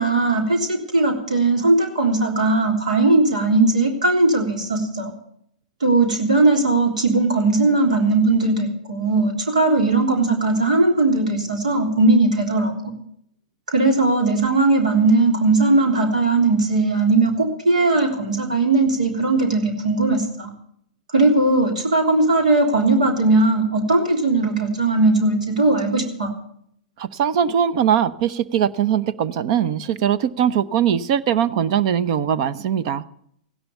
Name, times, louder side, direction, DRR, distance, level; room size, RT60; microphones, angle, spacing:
voice 1, 0.0-5.1 5.8-12.9 13.7-20.5 21.1-26.3, right 2 dB, 85° right, 4 dB, 3.5 m, -18 dB
voice 2, 27.0-33.0, right 9 dB, 55° right, 17 dB, 0.9 m, -21 dB
16.0 x 11.0 x 6.9 m, 0.68 s
hypercardioid pair, 110°, 4 cm